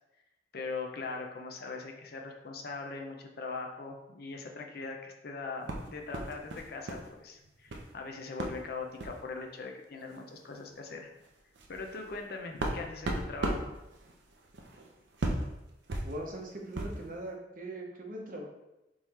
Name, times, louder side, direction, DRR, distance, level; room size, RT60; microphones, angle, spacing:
voice 1, 0.5-11.1 11.7-13.7, left 4 dB, 60° left, 2 dB, 0.6 m, -41 dB
sound 1, 5.7-7.1 7.3-7.9 8.4-8.6 8.9-9.2 10.1-10.2 10.5-10.7 11.2-17.1, right 1 dB, 80° right, 0.7 m, -37 dB
voice 2, 16.0-18.5, right 1 dB, 50° right, 0 dB, 0.8 m, -40 dB
3.7 x 3.1 x 4.2 m, 0.95 s
head